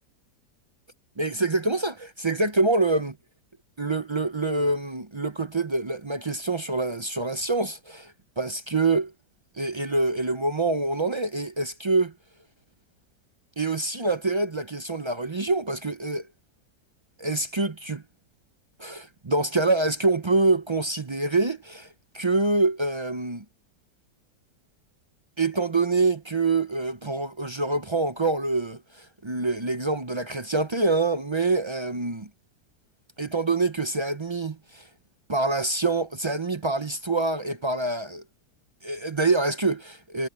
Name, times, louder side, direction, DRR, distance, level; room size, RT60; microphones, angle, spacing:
voice 1, 1.2-3.1 3.8-9.1 9.6-12.1 13.6-16.2 17.2-18.0 18.8-21.9 22.1-23.4 25.4-32.3 33.2-34.8 35.3-38.2 38.8-40.3, right 3 dB, 45° right, 0.3 m, -26 dB
omnidirectional pair, 1.8 m